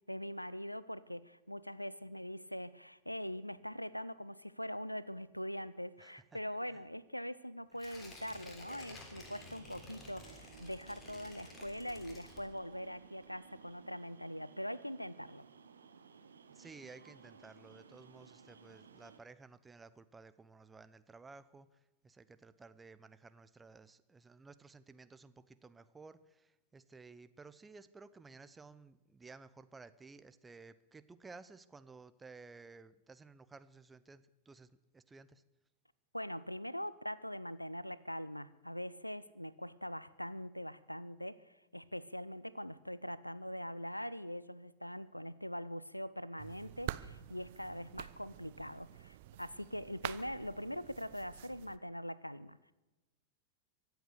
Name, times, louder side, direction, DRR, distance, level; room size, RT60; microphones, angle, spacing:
voice 1, 0.1-15.4 36.1-52.7, equal, 90° left, 19 dB, 0.5 m, -43 dB
voice 2, 6.0-6.4 6.7-6.8 7.7-7.8 16.5-35.4, right 4 dB, 15° right, 13 dB, 0.7 m, -56 dB
Tearing, 7.8-12.9 13.2-13.3, left 2 dB, 25° left, 3.5 m, -53 dB
sound 1, 9.0-19.2, right 6 dB, 70° right, 1.1 m, -58 dB
sound 2, 46.4-51.8, right 14 dB, 50° right, 0.6 m, -47 dB
24.0 x 8.1 x 6.6 m, 1.1 s
figure-of-eight pair, 90°, 0 cm